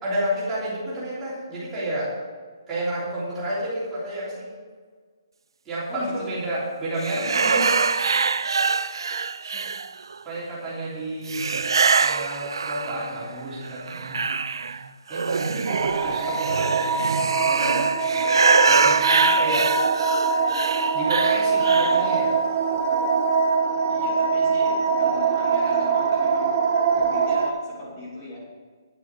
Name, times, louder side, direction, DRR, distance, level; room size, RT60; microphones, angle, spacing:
voice 1, 0.0-2.2 2.7-4.5 5.6-7.8 10.2-11.5 12.0-14.2 15.1-16.8 17.4-18.1 18.7-19.7 20.9-22.4, right 1 dB, 5° right, -10 dB, 3.3 m, -30 dB
voice 2, 5.9-6.3 9.4-9.7 15.5-15.7 18.5-18.7 23.9-26.7 26.9-28.4, left 1 dB, 20° left, -6 dB, 2.9 m, -37 dB
sound 1, 7.0-10.2 11.3-13.3 13.6-22.1, right 5 dB, 75° right, 0.5 m, -24 dB
sound 2, 15.7-27.5, right 4 dB, 25° right, 0.8 m, -23 dB
10.0 x 8.4 x 6.2 m, 1.5 s
hypercardioid pair, 175°, 2 cm